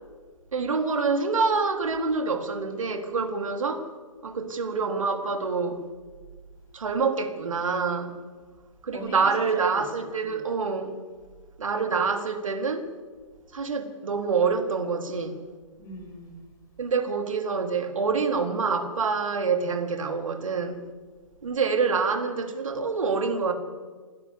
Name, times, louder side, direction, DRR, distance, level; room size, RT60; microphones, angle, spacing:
voice 1, 0.5-3.9 4.2-5.8 6.7-8.1 8.8-10.9 11.6-12.9 13.5-15.4 16.8-20.8 21.4-23.5, right 4 dB, 65° right, 3.6 m, -26 dB
voice 2, 8.9-9.8 10.3-10.4 15.8-16.5, left 1 dB, 15° left, 6.5 m, -41 dB
28.0 x 11.5 x 8.3 m
figure-of-eight pair, 135°, 18 cm